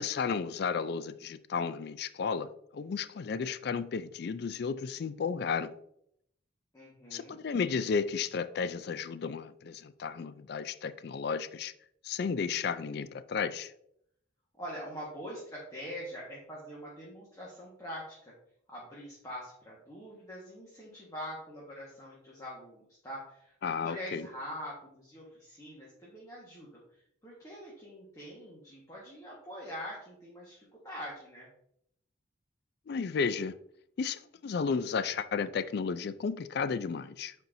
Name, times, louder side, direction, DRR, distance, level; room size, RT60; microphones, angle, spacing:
voice 1, 0.0-5.7 7.1-11.7 12.0-13.7 23.6-24.3 32.9-33.5 34.0-37.3, left 5 dB, 55° left, 0.3 m, -33 dB
voice 2, 6.7-7.4 14.6-18.3 18.7-23.5 23.8-31.5, equal, 15° left, 1.5 m, -44 dB
9.3 x 4.4 x 2.7 m
head